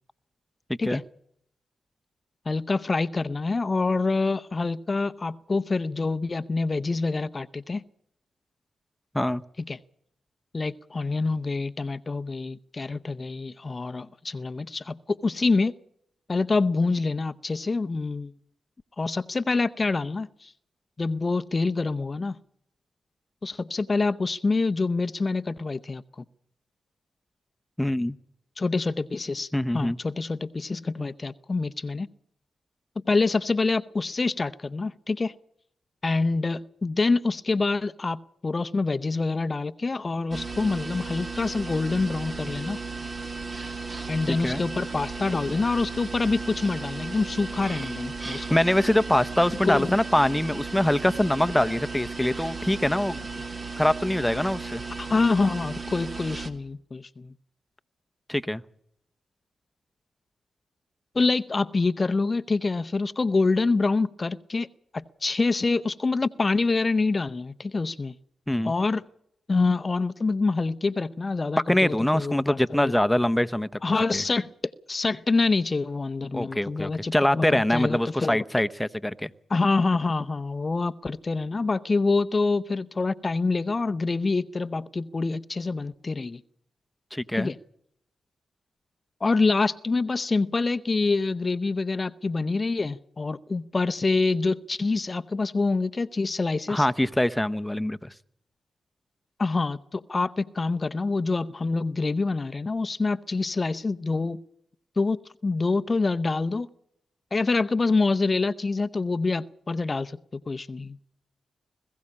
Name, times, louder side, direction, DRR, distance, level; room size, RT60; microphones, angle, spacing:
voice 1, 2.5-7.8 9.7-9.8 10.5-15.8 16.3-18.3 19.0-20.5 21.0-22.4 23.4-26.0 28.6-29.5 29.7-32.1 33.1-35.3 36.0-42.8 44.1-48.6 49.6-49.9 55.0-57.3 61.1-64.7 64.9-68.1 68.6-69.0 69.5-72.9 73.8-74.5 74.9-78.4 79.5-86.4 87.3-87.6 89.2-96.9 99.4-104.4 105.0-105.2 105.4-106.7 107.3-110.2 110.5-111.0, left 3 dB, 40° left, 12 dB, 0.7 m, -26 dB
voice 2, 27.8-28.1 29.5-30.0 44.3-44.6 48.5-53.3 53.8-54.8 58.3-58.6 68.5-68.7 71.7-73.7 74.1-74.2 76.3-79.3 87.1-87.5 96.7-98.1, left 1 dB, 10° left, 11 dB, 0.9 m, -24 dB
sound 1, 40.3-56.5, right 4 dB, 45° right, 2.4 m, -35 dB
21.0 x 15.0 x 8.6 m, 0.72 s
supercardioid pair, 40°, 0 cm